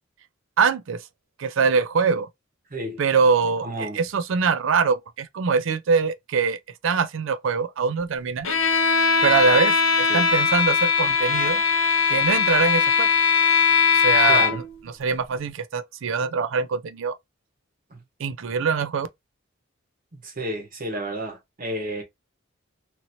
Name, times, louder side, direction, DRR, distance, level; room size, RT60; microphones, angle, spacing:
voice 1, 0.6-1.0 1.4-2.3 3.0-8.5 9.2-11.6 12.1-13.1 13.9-14.6 15.0-17.1 18.2-19.1, right 5 dB, 70° right, 0.4 m, -23 dB
voice 2, 3.6-4.0 10.1-10.3 14.2-14.6 17.9-18.0 20.2-22.0, right 1 dB, 45° right, 1.3 m, -31 dB
Bowed string instrument, 8.4-14.8, left 6 dB, 90° left, 0.8 m, -20 dB
2.9 x 2.8 x 2.6 m
head